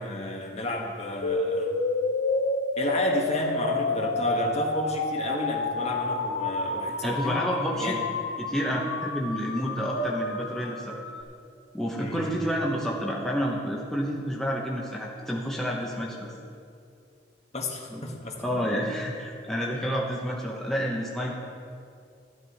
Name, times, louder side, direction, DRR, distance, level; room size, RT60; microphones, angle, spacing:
voice 1, 0.0-1.7 2.8-7.4 7.8-8.0 12.0-12.4 17.5-18.6, left 1 dB, 35° left, 0 dB, 1.6 m, -32 dB
sound 1, 1.2-11.2, left 3 dB, 75° left, 0.9 m, -29 dB
voice 2, 7.0-8.0 8.4-11.0 11.7-16.3 17.9-18.0 18.4-21.3, equal, ahead, -3 dB, 1.1 m, -29 dB
sound 2, 9.9-12.9, right 3 dB, 70° right, 1.9 m, -38 dB
12.5 x 12.5 x 4.2 m, 2.4 s
head